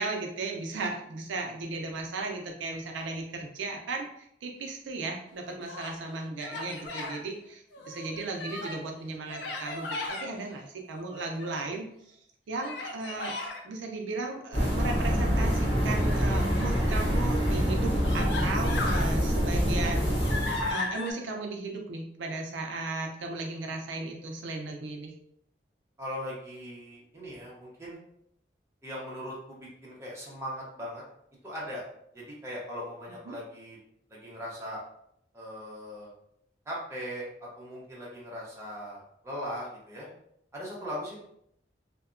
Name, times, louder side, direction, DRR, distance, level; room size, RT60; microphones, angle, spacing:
voice 1, 0.0-4.1 4.4-11.9 12.5-13.3 13.6-25.1 33.3-33.4, right 3 dB, 90° right, 2 dB, 0.4 m, -36 dB
Human voice, 5.4-6.0 6.4-7.2 7.7-8.9 9.3-10.3 10.9-11.7 12.6-13.6 15.9-16.8 17.5-17.6 18.0-19.1 19.6-21.1, left 3 dB, 70° left, 0.5 m, -37 dB
sound 1, 14.5-20.7, equal, 30° left, 0.7 m, -26 dB
voice 2, 26.0-28.0 28.8-31.0 31.4-31.8 32.1-33.8 34.1-34.8 35.3-36.1 36.7-37.3 37.6-40.1 40.5-41.2, equal, 15° right, -5 dB, 0.7 m, -39 dB
2.7 x 2.1 x 2.4 m, 0.73 s
head